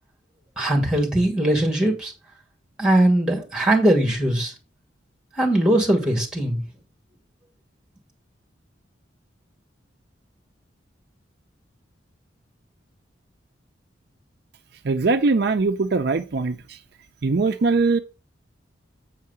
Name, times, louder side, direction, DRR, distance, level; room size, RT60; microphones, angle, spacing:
voice 1, 0.6-2.1 2.8-4.5 5.4-6.6, right 1 dB, 5° right, 2.2 m, -20 dB
voice 2, 14.8-16.8 17.2-18.0, right 3 dB, 55° right, 0.5 m, -21 dB
8.2 x 4.8 x 5.5 m
head